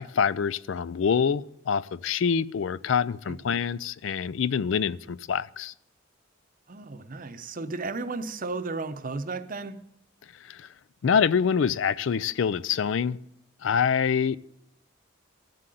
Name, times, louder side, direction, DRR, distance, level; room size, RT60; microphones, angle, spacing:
voice 1, 0.0-5.7 10.4-10.7 11.0-13.2 13.6-14.4, left 6 dB, 70° left, 0.4 m, -26 dB
voice 2, 6.7-9.8, right 3 dB, 45° right, 0.7 m, -34 dB
13.5 x 7.7 x 7.6 m
head